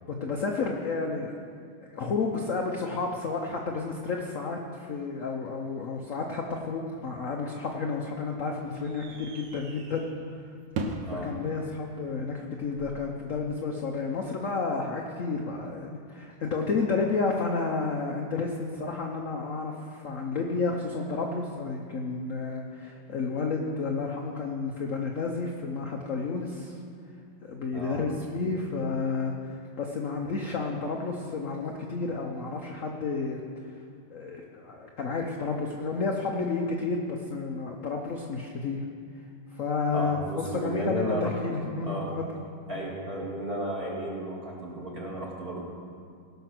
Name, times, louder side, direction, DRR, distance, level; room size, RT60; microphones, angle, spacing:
voice 1, 0.1-1.4 1.9-10.1 11.1-26.8 27.4-33.4 34.1-38.8 39.5-42.3, left 4 dB, 60° left, 1 dB, 0.9 m, -31 dB
sound 1, 8.4-13.4, right 3 dB, 65° right, 1.4 m, -41 dB
voice 2, 39.9-41.4 41.8-42.1 42.7-45.6, right 1 dB, 30° right, -4 dB, 2.0 m, -33 dB
17.5 x 5.8 x 6.0 m, 2.2 s
omnidirectional pair, 2.2 m